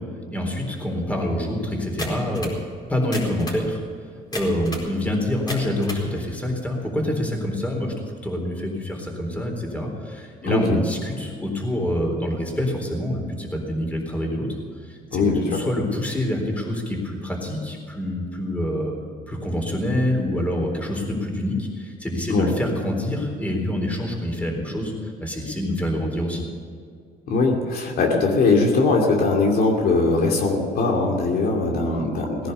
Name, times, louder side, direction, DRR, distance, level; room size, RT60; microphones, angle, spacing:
voice 1, 0.3-2.5 2.9-3.8 4.3-7.9 8.2-14.5 14.8-18.9 19.3-26.4, left 1 dB, 10° left, 1 dB, 4.0 m, -26 dB
sound 1, 2.0-2.6 3.0-3.7 4.3-4.9 5.3-6.1, left 1 dB, 25° left, 4.6 m, -33 dB
voice 2, 10.4-10.8 15.1-15.6 22.3-22.5 27.3-32.5, left 3 dB, 60° left, 0 dB, 2.7 m, -21 dB
18.0 x 10.5 x 6.9 m, 2.2 s
cardioid pair, 110°, 17 cm